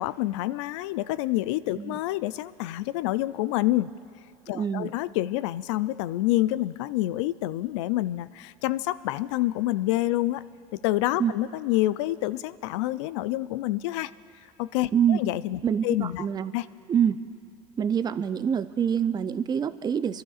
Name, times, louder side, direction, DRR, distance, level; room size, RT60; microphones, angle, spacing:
voice 1, 0.0-3.9 4.5-10.4 10.7-14.1 14.6-16.3 16.5-16.6, left 16 dB, 80° left, 17 dB, 0.4 m, -27 dB
voice 2, 4.5-4.9 11.2-11.3 14.9-15.2 15.6-16.5 16.9-17.2 17.8-20.2, right 8 dB, 25° right, 12 dB, 0.5 m, -25 dB
29.0 x 12.0 x 2.4 m, 2.7 s
supercardioid pair, 100°, 15 cm